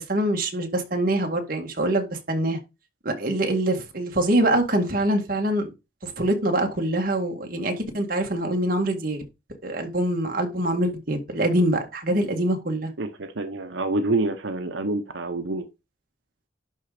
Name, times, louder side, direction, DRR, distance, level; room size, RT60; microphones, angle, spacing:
voice 1, 0.0-2.6 3.0-5.7 6.0-9.3 9.6-12.9, right 1 dB, 50° right, 1.9 m, -24 dB
voice 2, 13.0-15.7, right 2 dB, 90° right, 0.9 m, -27 dB
11.0 x 3.8 x 5.0 m
head